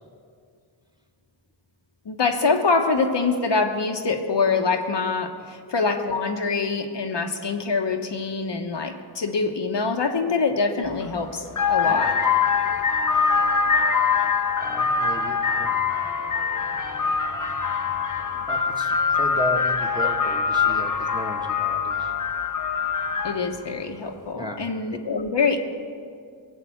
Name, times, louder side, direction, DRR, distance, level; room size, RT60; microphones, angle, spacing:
voice 1, 2.0-12.1 23.2-25.6, left 4 dB, 60° left, 4 dB, 1.2 m, -24 dB
sound 1, 10.8-11.1 11.5-23.6, left 5 dB, 40° left, 1.0 m, -23 dB
voice 2, 11.8-12.1 14.6-15.7 18.5-22.1 24.3-24.6, left 1 dB, 10° right, 2 dB, 1.6 m, -34 dB
17.5 x 7.7 x 7.9 m, 2.2 s
cardioid pair, 50°, 49 cm